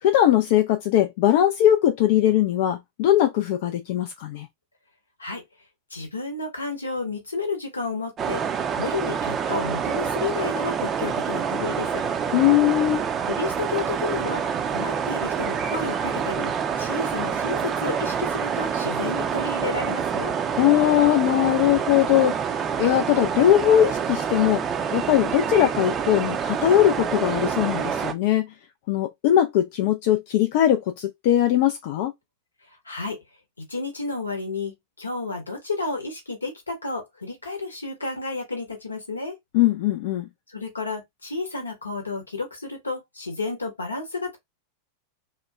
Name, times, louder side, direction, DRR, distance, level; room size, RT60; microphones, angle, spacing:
voice 1, 0.0-4.5 12.3-13.1 20.6-22.5 22.8-24.6 24.9-28.5 28.9-32.1 39.5-40.3, left 12 dB, 50° left, 0.3 m, -20 dB
voice 2, 5.9-8.4 8.8-12.0 13.3-20.3 32.8-33.2 33.6-39.3 40.5-44.4, left 3 dB, 80° left, 0.8 m, -31 dB
sound 1, 8.2-28.1, right 7 dB, 25° right, 0.4 m, -27 dB
2.8 x 2.1 x 2.2 m
figure-of-eight pair, 90°, 0 cm